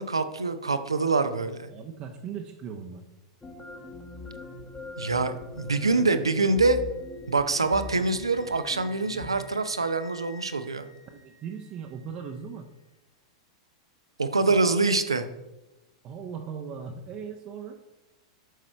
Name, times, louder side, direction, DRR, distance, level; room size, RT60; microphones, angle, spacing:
voice 1, 0.0-1.7 5.0-6.8 7.3-10.9 14.2-15.2, right 3 dB, 85° right, 10 dB, 0.7 m, -25 dB
voice 2, 1.7-3.0 5.8-6.4 11.1-12.7 16.0-17.8, right 6 dB, 35° right, 3 dB, 0.7 m, -39 dB
sound 1, 3.4-9.4, left 3 dB, 15° left, 1.2 m, -42 dB
Wind instrument woodwind instrument, 6.4-12.4, left 5 dB, 55° left, 2.3 m, -53 dB
9.3 x 6.2 x 4.4 m, 1.0 s
figure-of-eight pair, 95°, 3 cm